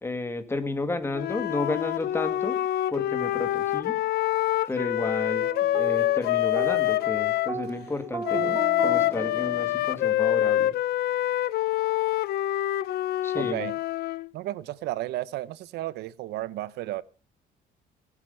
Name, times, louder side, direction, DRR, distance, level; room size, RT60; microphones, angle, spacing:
voice 1, 0.0-2.6 2.9-4.0 4.7-10.7 13.2-13.7, left 2 dB, 15° left, 2.0 m, -32 dB
Wind instrument woodwind instrument, 1.1-7.5 8.2-14.3, left 14 dB, 70° left, 0.6 m, -26 dB
sound 1, 5.4-10.0, right 3 dB, 20° right, 3.2 m, -36 dB
voice 2, 13.3-13.7 14.3-17.0, right 15 dB, 80° right, 0.7 m, -33 dB
17.5 x 8.1 x 5.6 m
cardioid pair, 110°, 17 cm